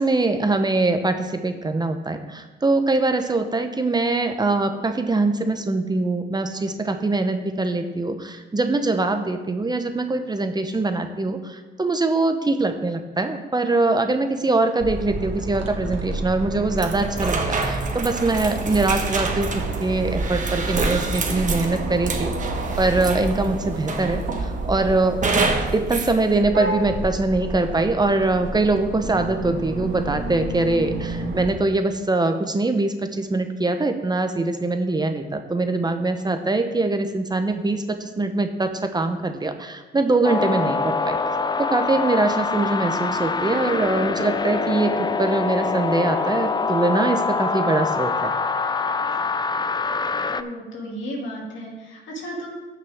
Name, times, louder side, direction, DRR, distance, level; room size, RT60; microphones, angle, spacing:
voice 1, 0.0-22.3 22.8-25.2 25.7-41.2 41.6-48.3, right 2 dB, 20° right, 7 dB, 0.8 m, -23 dB
sound 1, 14.8-31.5, right 3 dB, 75° right, 1.7 m, -29 dB
sound 2, 16.8-23.4 23.9-24.5 25.2-26.2, right 3 dB, 40° right, 1.4 m, -28 dB
sound 3, 40.2-50.4, left 4 dB, 20° left, 0.4 m, -24 dB
voice 2, 50.3-52.5, equal, 75° left, -2 dB, 2.8 m, -34 dB
14.5 x 5.8 x 3.7 m, 1.2 s
cardioid pair, 90°, 20 cm